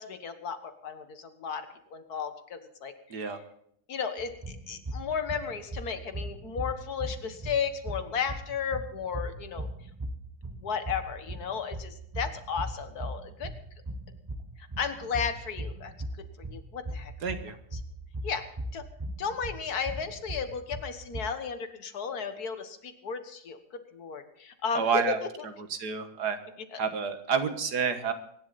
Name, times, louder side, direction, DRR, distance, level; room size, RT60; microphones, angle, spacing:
voice 1, 0.0-3.4 3.9-4.3 4.7-9.7 10.5-13.5 14.6-15.9 16.2-17.1 17.7-17.8 18.2-18.4 18.7-18.8 19.2-25.5 26.7-26.8, left 6 dB, 70° left, 8 dB, 1.9 m, -34 dB
sound 1, 4.2-21.2, right 1 dB, 20° right, 0.7 m, -39 dB
voice 2, 17.2-17.5 24.8-25.2 25.7-26.4 26.8-28.1, right 6 dB, 80° right, 8 dB, 2.0 m, -29 dB
24.0 x 11.0 x 4.1 m, 0.69 s
omnidirectional pair, 1.7 m